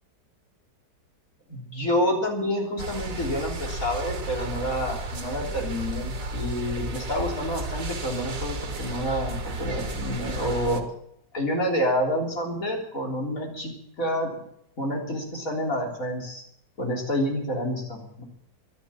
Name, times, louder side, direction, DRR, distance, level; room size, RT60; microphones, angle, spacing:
voice 1, 1.5-10.8 11.3-14.3 14.8-16.4 16.8-18.2, equal, 50° left, 0 dB, 4.0 m, -28 dB
sound 1, 2.8-10.8, right 1 dB, 50° right, 1.9 m, -33 dB
13.0 x 11.5 x 8.6 m, 0.71 s
omnidirectional pair, 1.9 m